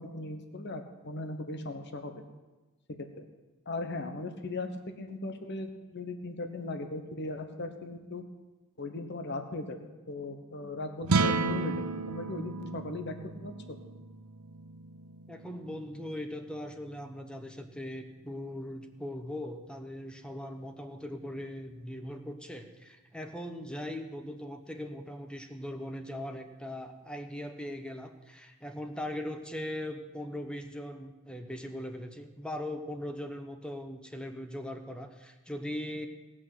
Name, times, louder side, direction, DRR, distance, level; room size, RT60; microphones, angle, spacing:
voice 1, 0.0-2.2 3.2-3.3 3.7-8.2 8.8-13.2 13.4-13.5, left 2 dB, 55° left, 6 dB, 1.1 m, -38 dB
sound 1, 11.0-17.4, right 3 dB, 85° right, 0.8 m, -34 dB
voice 2, 15.3-36.1, left 1 dB, 5° left, 6 dB, 0.9 m, -40 dB
18.5 x 6.3 x 7.8 m, 1.2 s
head